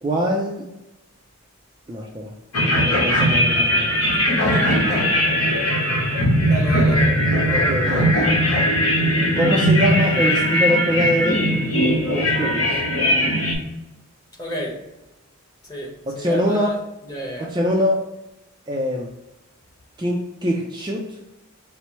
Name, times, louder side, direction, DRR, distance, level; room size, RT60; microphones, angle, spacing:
voice 1, 0.0-0.7 1.9-2.3 2.8-3.9 7.5-8.1 9.4-11.6 12.1-12.8 16.1-16.8 17.5-18.1 18.7-19.1 20.0-21.2, equal, 20° right, -1 dB, 0.4 m, -23 dB
sound 1, 2.5-13.5, equal, 70° left, 1.1 m, -19 dB
voice 2, 4.4-5.1 5.4-5.6 6.4-7.2 14.4-14.8 15.6-16.8 17.0-17.5, equal, 15° left, -4 dB, 1.0 m, -31 dB
4.4 x 2.0 x 4.2 m, 0.94 s
head